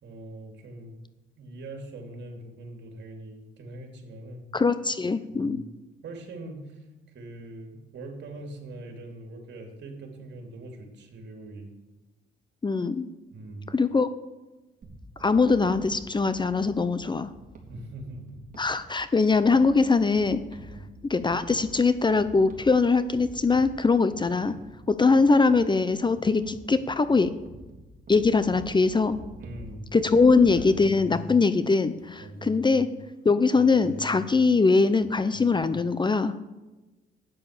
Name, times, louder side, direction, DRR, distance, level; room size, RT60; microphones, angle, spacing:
voice 1, 0.0-0.9 1.4-4.4 5.3-5.6 6.0-6.8 7.1-11.7 13.3-13.7 17.7-18.4 20.6-20.9 29.4-29.9 32.2-32.6, right 2 dB, 60° right, 2 dB, 3.2 m, -42 dB
voice 2, 4.5-5.6 12.6-13.1 13.7-14.1 15.2-17.3 18.6-20.4 21.1-24.5 24.9-27.3 28.1-29.2 29.9-32.9 33.2-36.4, left 4 dB, 25° left, 12 dB, 0.7 m, -22 dB
sound 1, 14.8-30.7, right 1 dB, 40° right, 3.5 m, -47 dB
sound 2, 28.6-30.1 30.5-33.1 33.5-35.8, left 2 dB, 45° left, 1.6 m, -45 dB
12.0 x 9.4 x 6.8 m, 1.1 s
cardioid pair, 90°, 20 cm